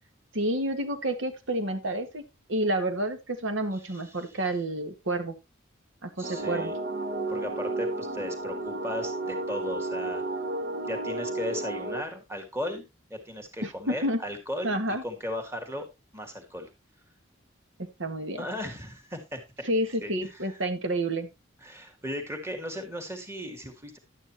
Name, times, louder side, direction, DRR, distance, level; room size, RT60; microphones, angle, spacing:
voice 1, 0.3-2.2 2.5-5.3 6.0-6.7 13.6-14.2 14.6-15.0 17.8-18.5 19.6-21.3, right 1 dB, 75° right, 8 dB, 1.7 m, -29 dB
voice 2, 3.8-4.2 6.2-6.7 7.3-10.2 10.8-15.9 16.1-16.7 18.4-19.4 20.0-20.6 21.6-24.0, left 1 dB, 15° right, 4 dB, 2.1 m, -36 dB
sound 1, 6.2-12.0, right 2 dB, 50° right, 0.9 m, -32 dB
11.0 x 9.2 x 2.9 m, 0.22 s
head